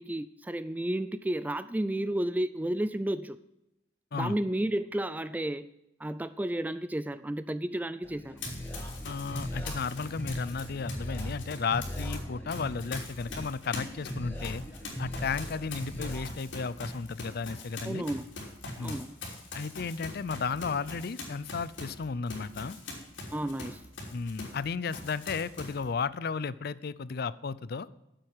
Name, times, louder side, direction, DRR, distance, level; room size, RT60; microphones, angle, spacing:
voice 1, 0.0-3.4 4.1-5.7 6.0-8.4 17.8-18.3 18.8-19.2 23.3-23.8, right 1 dB, 10° right, 14 dB, 0.3 m, -32 dB
sound 1, 8.0-16.3, equal, 10° left, 1.9 m, -39 dB
Run, 8.4-12.2 12.5-24.6 24.9-25.8, left 2 dB, 90° left, 3.5 m, -42 dB
voice 2, 9.0-14.6 15.0-18.0 18.8-19.0 19.5-22.8 24.1-27.9, left 5 dB, 55° left, 18 dB, 0.5 m, -34 dB
9.5 x 7.6 x 8.8 m, 0.89 s
head